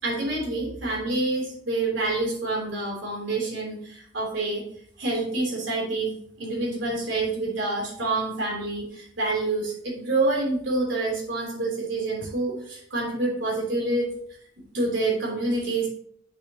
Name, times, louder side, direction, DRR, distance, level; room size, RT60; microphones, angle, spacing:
voice 1, 0.0-4.6 5.0-14.1 14.7-15.9, right 2 dB, 80° right, -2 dB, 3.3 m, -27 dB
8.0 x 7.1 x 3.0 m, 0.65 s
head